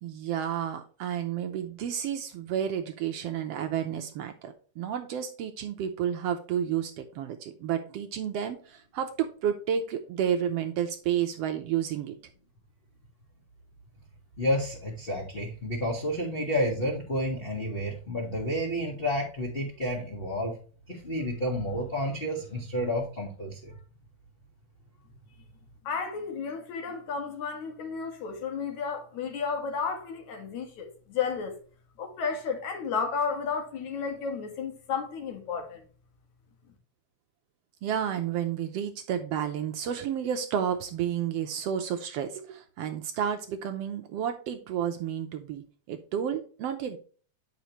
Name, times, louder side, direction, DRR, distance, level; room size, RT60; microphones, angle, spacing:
voice 1, 0.0-12.2 37.8-47.0, right 9 dB, 75° right, 1.5 m, -31 dB
voice 2, 14.4-20.5 20.9-23.8, equal, 30° left, 1.0 m, -30 dB
voice 3, 25.8-31.5 32.0-35.8, left 5 dB, 75° left, 2.9 m, -32 dB
8.2 x 5.8 x 3.0 m
omnidirectional pair, 3.4 m